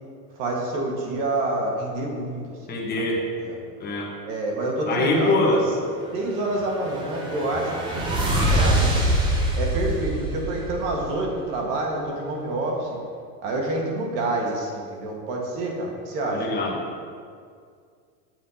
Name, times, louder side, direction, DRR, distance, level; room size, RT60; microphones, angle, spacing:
voice 1, 0.3-2.4 2.7-2.8 3.4-3.6 4.3-5.6 6.1-7.8 8.5-9.1 9.5-13.0 13.4-16.5, right 2 dB, 55° right, 0 dB, 1.6 m, -27 dB
voice 2, 2.7-3.3 3.8-4.1 4.9-5.6 16.3-16.8, left 2 dB, 20° left, -3 dB, 1.2 m, -23 dB
sound 1, 6.4-11.4, right 1 dB, 10° right, 0.3 m, -24 dB
7.6 x 7.3 x 2.8 m, 2.2 s
supercardioid pair, 135°, 49 cm